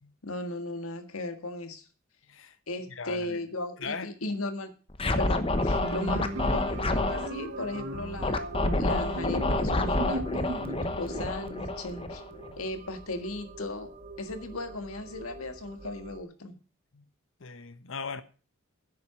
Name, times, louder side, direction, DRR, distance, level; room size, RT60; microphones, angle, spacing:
voice 1, 0.2-1.9 2.7-4.7 5.1-8.5 8.7-10.6 11.0-12.2 12.6-13.9 14.2-16.6, left 2 dB, 85° left, 1.7 m, -36 dB
voice 2, 2.9-3.4 3.8-4.1 12.4-12.6 16.9-17.0 17.4-18.2, left 5 dB, 65° left, 1.1 m, -38 dB
Scratching (performance technique), 4.9-7.3 8.2-12.5, left 2 dB, 25° left, 0.9 m, -28 dB
sound 1, 5.5-16.2, right 3 dB, 35° right, 1.4 m, -44 dB
sound 2, 5.7-11.3, right 1 dB, 80° right, 2.0 m, -37 dB
9.8 x 7.9 x 7.6 m
head